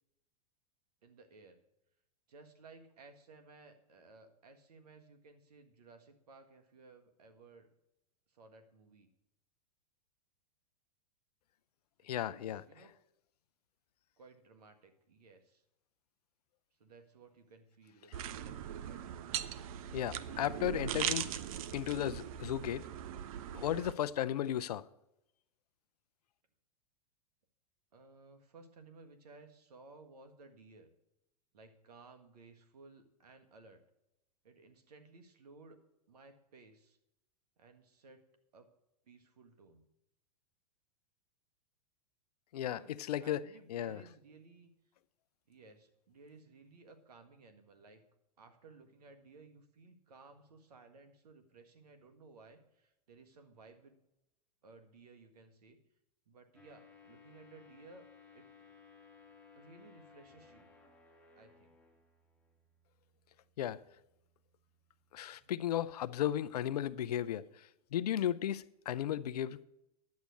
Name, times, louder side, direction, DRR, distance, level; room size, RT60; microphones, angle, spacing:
voice 1, 1.0-1.6 2.3-7.7 8.3-9.1 12.2-12.9 14.2-15.6 16.8-19.4 27.9-30.9 31.5-33.8 34.4-35.8 36.1-37.0 37.6-38.2 38.5-38.7 39.1-39.8 42.7-44.7 45.5-48.0 48.4-54.0 54.6-55.8 56.3-58.1 58.3-58.7 59.5-60.7 61.4-61.8 65.3-65.5, right 3 dB, 80° right, 1.7 m, -58 dB
voice 2, 12.1-12.6 19.9-21.3 21.7-22.9 23.5-24.8 42.5-43.4 43.7-44.0 63.6-63.8 65.1-67.4 67.9-69.6, left 11 dB, 75° left, 0.6 m, -35 dB
sound 1, 18.1-23.9, right 10 dB, 65° right, 0.7 m, -40 dB
sound 2, 56.5-66.1, left 5 dB, 5° left, 2.1 m, -62 dB
10.5 x 8.3 x 6.4 m
hypercardioid pair, 115°, 20 cm